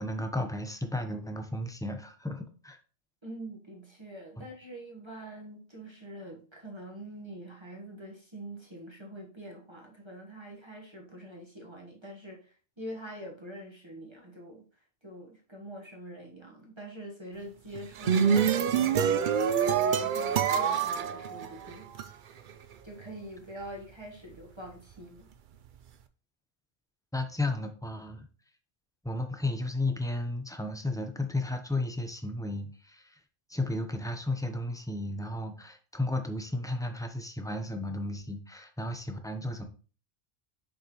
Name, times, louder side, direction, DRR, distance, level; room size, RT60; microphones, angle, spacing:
voice 1, 0.0-2.8 4.4-4.5 27.1-28.3 29.0-33.2 33.5-39.6, left 2 dB, 5° left, 6 dB, 0.6 m, -33 dB
voice 2, 3.2-14.7 15.0-21.9 22.2-22.4 22.8-25.3, right 1 dB, 25° right, -1 dB, 1.2 m, -45 dB
sound 1, 17.7-22.1, right 7 dB, 60° right, 0.6 m, -26 dB
6.5 x 5.3 x 3.0 m, 0.39 s
omnidirectional pair, 1.1 m